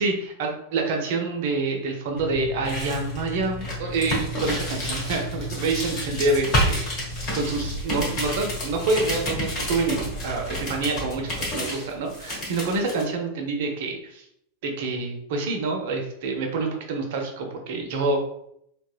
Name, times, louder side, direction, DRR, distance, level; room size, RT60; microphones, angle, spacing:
voice 1, 0.0-14.3 14.6-18.2, right 3 dB, 50° right, 3 dB, 0.4 m, -27 dB
sound 1, 2.2-13.0, left 1 dB, 40° left, 0.9 m, -29 dB
2.8 x 2.1 x 2.3 m, 0.74 s
figure-of-eight pair, 90°, 0 cm